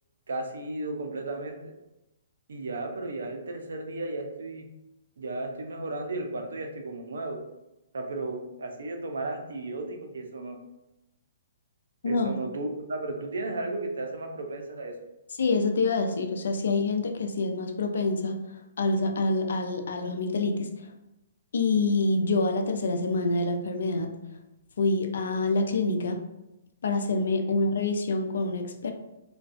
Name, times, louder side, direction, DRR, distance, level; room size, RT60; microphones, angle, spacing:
voice 1, 0.3-1.6 2.5-4.6 5.2-7.4 7.9-10.6 12.0-14.9, right 2 dB, 80° right, 4 dB, 0.4 m, -34 dB
voice 2, 12.0-12.4 15.4-18.4 18.8-20.7 21.5-24.1 24.8-26.2 26.8-28.9, left 3 dB, 75° left, 5 dB, 0.4 m, -26 dB
2.4 x 2.2 x 2.4 m, 0.95 s
hypercardioid pair, 140°, 0 cm